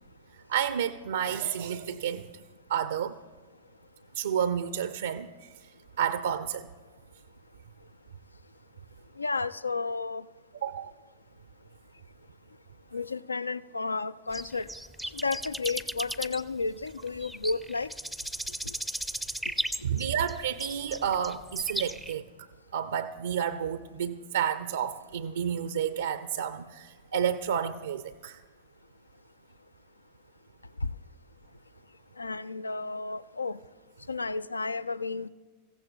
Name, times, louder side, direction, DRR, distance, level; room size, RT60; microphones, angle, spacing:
voice 1, 0.5-2.3 2.7-3.2 4.1-5.7 6.0-6.7 10.6-10.9 19.8-22.5 22.7-28.4, right 8 dB, 65° right, 11 dB, 0.4 m, -30 dB
voice 2, 9.2-10.2 12.9-14.7 15.1-17.9 32.2-33.6 34.1-35.3, left 4 dB, 80° left, 18 dB, 0.3 m, -32 dB
sound 1, 14.3-22.1, right 1 dB, ahead, 0.5 m, -36 dB
25.0 x 15.0 x 2.3 m, 1.3 s
figure-of-eight pair, 90°, 0 cm